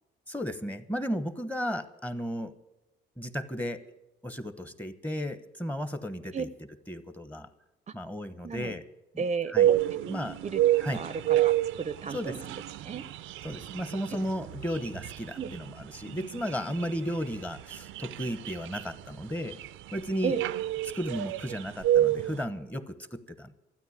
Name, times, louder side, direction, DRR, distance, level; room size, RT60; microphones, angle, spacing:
voice 1, 0.3-2.5 3.2-3.8 4.2-6.5 6.9-7.5 7.9-8.8 9.1-9.2 9.5-9.7 10.1-10.4 10.8-11.0 12.1-12.4 13.4-19.6 19.9-20.3 20.9-23.5, equal, 10° left, 12 dB, 1.0 m, -34 dB
voice 2, 8.4-8.7 9.2-12.6 12.8-13.1 15.4-15.5 20.2-20.4, right 5 dB, 35° right, 14 dB, 0.6 m, -34 dB
sound 1, 9.6-22.4, right 13 dB, 85° right, 0.5 m, -30 dB
13.0 x 9.2 x 9.7 m, 0.92 s
cardioid pair, 90°, 20 cm